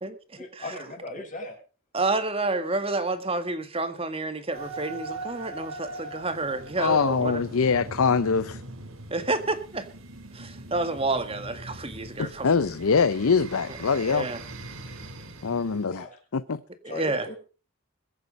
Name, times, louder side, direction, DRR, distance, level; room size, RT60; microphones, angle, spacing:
voice 1, 0.4-1.6 15.9-16.2 16.9-17.4, left 2 dB, 35° left, 6.4 m, -37 dB
voice 2, 1.9-7.4 9.1-9.9 10.3-12.5 13.9-14.4 16.8-17.3, right 2 dB, 25° right, 1.9 m, -29 dB
sound 1, 4.5-15.9, right 2 dB, 80° right, 3.2 m, -41 dB
voice 3, 6.8-8.6 12.2-14.3 15.4-16.1 16.3-16.6, left 5 dB, 85° left, 0.7 m, -23 dB
22.0 x 8.5 x 5.3 m
head